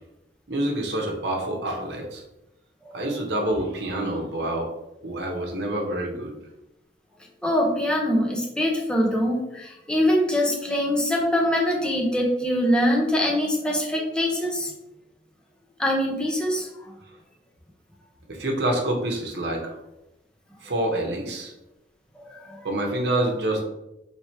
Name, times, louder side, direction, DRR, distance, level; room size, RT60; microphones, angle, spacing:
voice 1, 0.5-2.2 2.9-4.7 5.0-6.3 18.3-19.8 20.6-21.5 22.6-23.6, right 1 dB, 65° right, 1 dB, 0.9 m, -27 dB
voice 2, 7.4-14.7 15.8-16.7 22.2-22.7, equal, 5° left, -2 dB, 0.7 m, -23 dB
3.3 x 3.1 x 4.4 m, 0.91 s
head